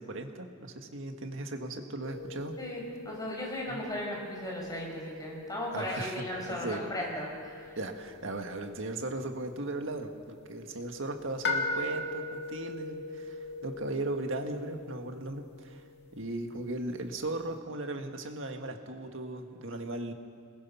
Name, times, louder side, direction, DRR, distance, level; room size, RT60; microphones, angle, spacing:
voice 1, 0.0-2.6 3.7-3.8 5.7-6.8 7.8-15.8 16.1-20.1, right 2 dB, 70° right, 5 dB, 1.9 m, -37 dB
sound 1, 2.0-17.5, left 2 dB, 60° left, 2.5 m, -41 dB
voice 2, 2.6-7.8, left 1 dB, 20° left, -2 dB, 6.0 m, -36 dB
26.5 x 20.5 x 5.8 m, 2.2 s
head